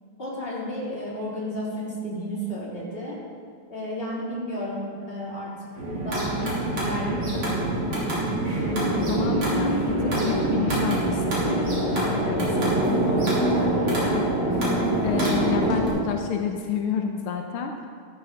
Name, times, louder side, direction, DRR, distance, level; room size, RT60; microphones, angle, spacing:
voice 1, 0.2-3.2 3.7-8.1, equal, 25° left, -7 dB, 3.6 m, -33 dB
sound 1, 5.8-15.9, right 1 dB, 75° right, 3.9 m, -24 dB
voice 2, 8.5-17.9, left 7 dB, 85° left, 3 dB, 1.7 m, -31 dB
14.0 x 13.0 x 3.8 m, 2.2 s
omnidirectional pair, 2.3 m